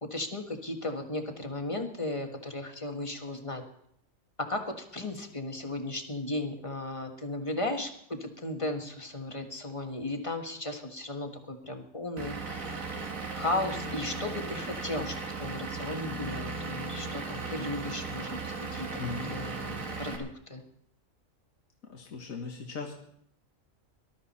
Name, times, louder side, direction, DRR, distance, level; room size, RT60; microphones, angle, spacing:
voice 1, 0.0-3.6 4.5-13.1 13.4-20.6, left 2 dB, 25° left, 4 dB, 1.5 m, -36 dB
Vehicle / Engine, 12.2-20.2, right 3 dB, 80° right, 2.2 m, -37 dB
voice 2, 19.0-19.4 21.9-22.9, left 4 dB, 85° left, 1 dB, 2.0 m, -38 dB
19.0 x 12.5 x 4.2 m, 0.70 s
omnidirectional pair, 1.4 m